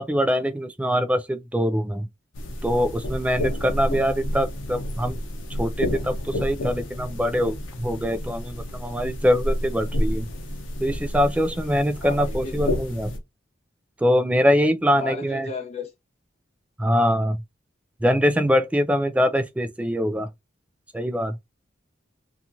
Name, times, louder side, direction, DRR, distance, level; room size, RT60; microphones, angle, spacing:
voice 1, 0.0-2.1 2.6-5.2 5.6-10.3 10.8-13.1 14.0-15.5 16.8-17.4 18.0-20.3 20.9-21.4, equal, 5° right, 0.3 m, -23 dB
sound 1, 2.3-13.2, left 1 dB, 85° left, 0.7 m, -30 dB
voice 2, 12.0-12.8 14.9-15.9, left 3 dB, 35° left, 0.8 m, -35 dB
2.8 x 2.4 x 2.6 m
head